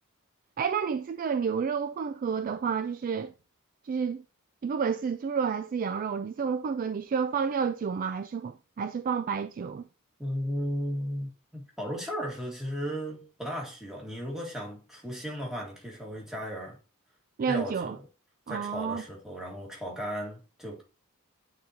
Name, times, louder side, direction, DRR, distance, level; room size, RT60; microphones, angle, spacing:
voice 1, 0.6-3.3 3.8-4.2 4.6-9.8 17.4-18.0 18.5-19.0, right 6 dB, 40° right, 0.3 m, -30 dB
voice 2, 10.2-16.8 17.5-18.0 18.5-20.8, equal, ahead, 1.8 m, -35 dB
8.7 x 3.9 x 2.8 m
head